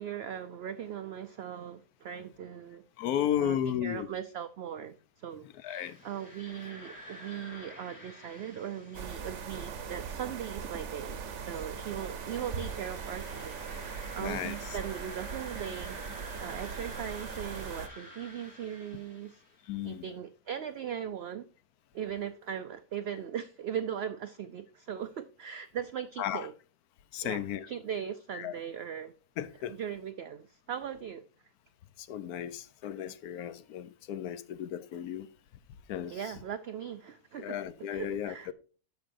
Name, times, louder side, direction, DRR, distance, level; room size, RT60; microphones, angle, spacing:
voice 1, 0.0-2.8 3.4-19.4 19.8-21.4 21.9-26.5 27.2-29.1 29.7-31.2 36.1-37.6 37.9-38.5, right 9 dB, 80° right, 0.5 m, -39 dB
voice 2, 3.0-4.1 5.6-6.0 14.2-14.5 19.7-20.0 26.2-26.5 27.1-27.7 28.3-28.5 29.4-29.8 32.0-35.3 35.9-36.2 37.4-38.5, left 10 dB, 80° left, 1.1 m, -34 dB
sound 1, 5.7-19.7, left 1 dB, 45° left, 2.5 m, -50 dB
sound 2, 8.9-17.9, right 6 dB, 55° right, 1.0 m, -40 dB
13.5 x 5.3 x 2.6 m
omnidirectional pair, 1.6 m